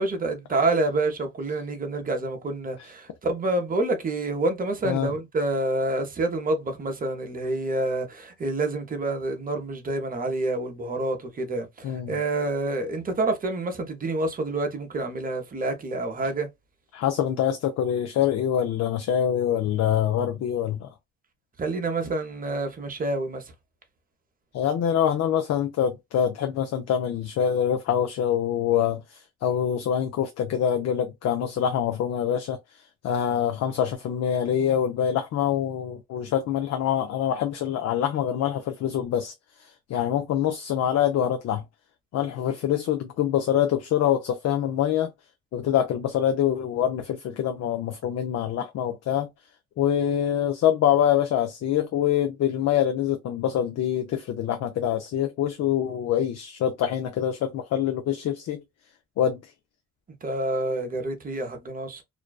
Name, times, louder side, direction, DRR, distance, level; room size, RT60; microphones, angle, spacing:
voice 1, 0.0-16.5 21.6-23.5 60.2-62.0, right 2 dB, 30° right, 0.7 m, -28 dB
voice 2, 16.9-20.9 24.5-32.6 33.0-39.3 39.9-41.6 42.1-45.1 45.5-49.3 49.8-58.6 59.2-59.4, left 10 dB, 60° left, 0.4 m, -25 dB
2.5 x 2.2 x 2.2 m
cardioid pair, 90°, 30 cm